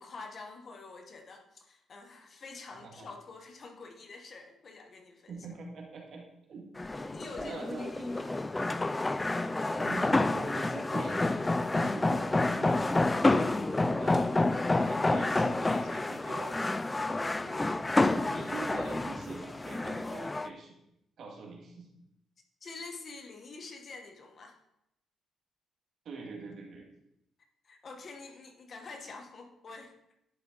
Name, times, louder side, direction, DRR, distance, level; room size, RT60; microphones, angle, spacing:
voice 1, 0.0-5.5 6.9-8.3 22.6-24.6 27.6-29.9, left 3 dB, 45° left, 4 dB, 1.2 m, -47 dB
voice 2, 2.7-3.1 5.3-6.2 6.5-6.7 7.0-7.1 7.4-8.2 9.8-16.6 17.3-17.8 18.2-20.7 21.2-21.9 26.1-26.9, right 4 dB, 60° right, -1 dB, 2.0 m, -44 dB
sound 1, 6.8-20.5, left 2 dB, 20° left, 0.3 m, -29 dB
10.5 x 4.2 x 3.8 m, 0.82 s
cardioid pair, 90°, 0 cm